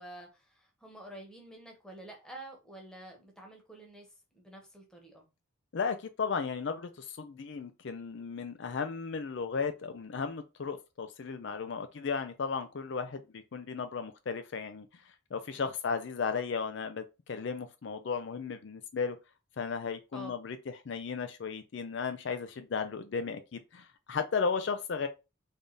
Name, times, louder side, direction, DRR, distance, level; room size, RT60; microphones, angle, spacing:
voice 1, 0.0-4.1 4.3-5.2 15.5-15.7 20.1-20.3, right 1 dB, 5° left, 1.1 m, -48 dB
voice 2, 5.7-14.9 15.3-19.2 19.6-25.1, left 5 dB, 55° left, 0.4 m, -35 dB
3.5 x 3.4 x 3.9 m
head